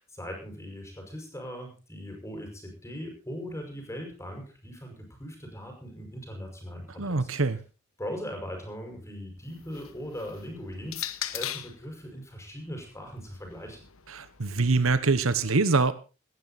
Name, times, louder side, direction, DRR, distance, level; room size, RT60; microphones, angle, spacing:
voice 1, 0.0-7.3 8.0-13.8, equal, 15° left, 3 dB, 5.7 m, -40 dB
voice 2, 7.0-7.6 14.1-15.9, right 3 dB, 80° right, 14 dB, 1.1 m, -24 dB
sound 1, 9.4-11.8 12.8-14.9, left 12 dB, 80° left, 1.1 m, -40 dB
18.0 x 12.5 x 4.1 m, 0.32 s
head